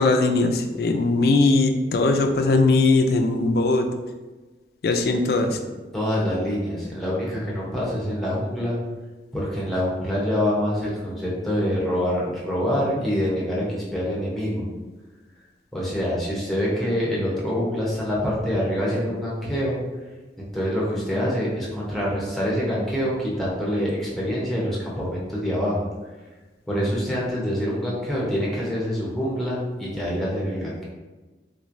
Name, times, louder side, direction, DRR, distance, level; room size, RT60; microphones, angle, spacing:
voice 1, 0.0-3.9 4.8-5.6, left 3 dB, 60° left, 5 dB, 0.3 m, -20 dB
voice 2, 5.4-8.8 9.3-14.7 15.7-19.8 20.4-25.8 26.7-30.8, equal, ahead, -6 dB, 0.8 m, -26 dB
3.6 x 3.1 x 2.5 m, 1.2 s
head